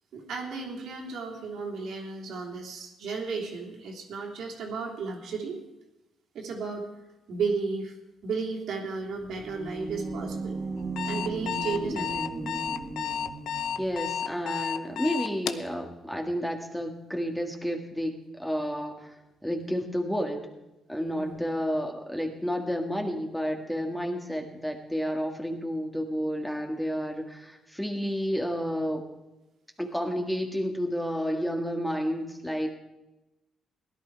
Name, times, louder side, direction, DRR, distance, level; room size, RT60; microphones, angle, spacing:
voice 1, 0.1-5.6 6.3-6.9 7.3-7.9 8.2-10.6 11.1-12.5 21.2-21.4, right 4 dB, 75° right, 0 dB, 3.0 m, -34 dB
sound 1, 9.1-14.0, right 3 dB, 35° right, 1.4 m, -36 dB
Alarm, 10.8-15.7, left 9 dB, 80° left, 0.7 m, -32 dB
voice 2, 13.8-20.5 20.9-29.1 29.8-32.7, equal, ahead, 3 dB, 1.8 m, -31 dB
16.5 x 11.0 x 4.7 m, 0.99 s
cardioid pair, 90°, 0 cm